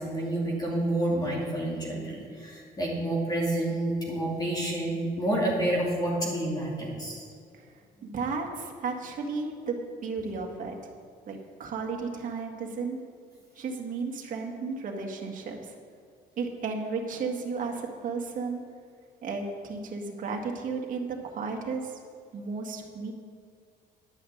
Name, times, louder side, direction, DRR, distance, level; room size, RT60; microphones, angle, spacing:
voice 1, 0.0-7.2 8.0-8.1, right 1 dB, 25° left, -4 dB, 2.6 m, -29 dB
voice 2, 8.0-10.9 11.3-13.0 13.6-15.7 16.4-18.6 19.2-21.9 22.3-23.1, right 4 dB, 50° right, 1 dB, 1.8 m, -34 dB
10.5 x 5.9 x 8.5 m, 2.2 s
cardioid pair, 110°, 17 cm